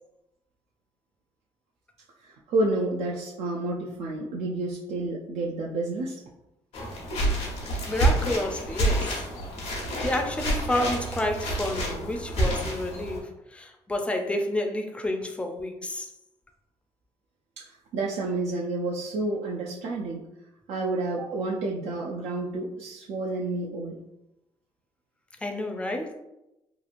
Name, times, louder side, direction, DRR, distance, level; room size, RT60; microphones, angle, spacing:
voice 1, 2.2-6.2 17.6-20.3 20.7-24.0, right 2 dB, 75° right, -3 dB, 0.4 m, -30 dB
sound 1, 6.7-13.2, right 1 dB, 90° left, 0.9 m, -28 dB
voice 2, 7.9-9.2 10.0-16.1 25.4-26.1, left 1 dB, 10° left, 4 dB, 0.4 m, -30 dB
2.9 x 2.4 x 2.4 m, 0.92 s
cardioid pair, 105°, 11 cm